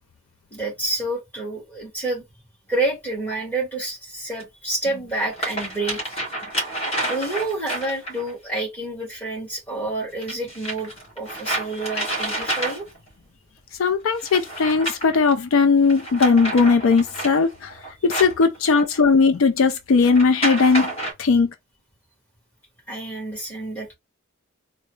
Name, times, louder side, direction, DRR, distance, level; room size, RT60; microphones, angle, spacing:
voice 1, 0.5-2.2 2.7-6.0 6.4-6.5 7.0-10.9 11.2-12.9 22.9-23.9, right 2 dB, 10° left, 1.5 m, -28 dB
sound 1, 2.7-2.8 4.4-4.5 5.1-8.3 10.2-13.1 14.1-15.3 15.8-19.0 20.0-21.1, right 1 dB, 25° left, 1.4 m, -29 dB
voice 2, 13.8-17.7 18.0-20.9 21.2-21.5, left 4 dB, 65° left, 0.4 m, -18 dB
3.8 x 2.0 x 3.2 m
head